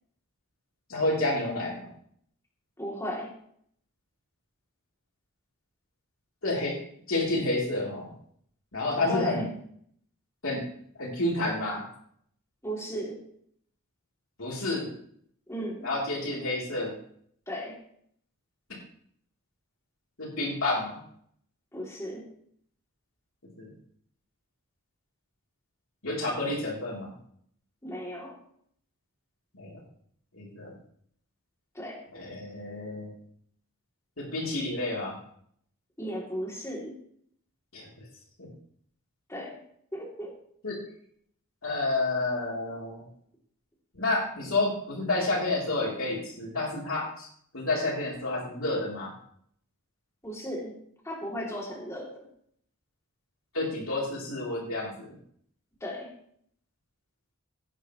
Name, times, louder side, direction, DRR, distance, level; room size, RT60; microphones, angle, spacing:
voice 1, 0.9-1.8 6.4-6.8 7.1-8.1 8.7-9.5 10.4-10.6 11.0-11.8 14.4-14.9 15.8-17.0 20.2-21.0 23.6-23.7 26.0-27.1 29.6-29.8 30.3-30.7 32.1-33.1 34.2-35.1 37.7-37.9 38.4-38.5 40.6-40.8 41.6-43.0 43.9-47.3 47.5-49.1 53.5-55.1, left 2 dB, 70° left, -4 dB, 3.6 m, -29 dB
voice 2, 2.8-3.3 9.1-9.5 12.6-13.2 15.5-15.9 17.5-17.8 21.7-22.3 27.8-28.4 31.7-32.0 36.0-37.0 39.3-39.6 39.9-40.3 50.2-50.8 51.0-52.3 55.8-56.1, equal, 15° left, -2 dB, 3.0 m, -35 dB
16.0 x 10.0 x 3.2 m, 0.64 s
head